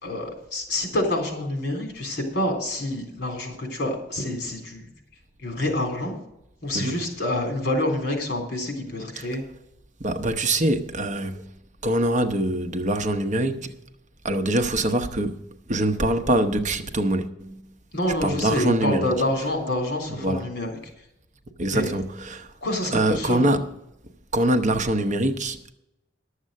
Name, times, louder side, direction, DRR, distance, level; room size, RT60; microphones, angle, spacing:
voice 1, 0.0-4.9 5.4-6.1 6.6-9.4 17.9-20.8 21.7-21.9 22.6-23.4, left 1 dB, 60° left, 3.6 m, -27 dB
voice 2, 10.0-11.4 11.8-13.7 14.2-15.4 15.7-17.5 18.2-19.1 20.2-20.4 21.6-22.5 22.9-23.7 24.3-25.7, right 1 dB, 45° right, 0.9 m, -24 dB
11.5 x 7.4 x 6.6 m
head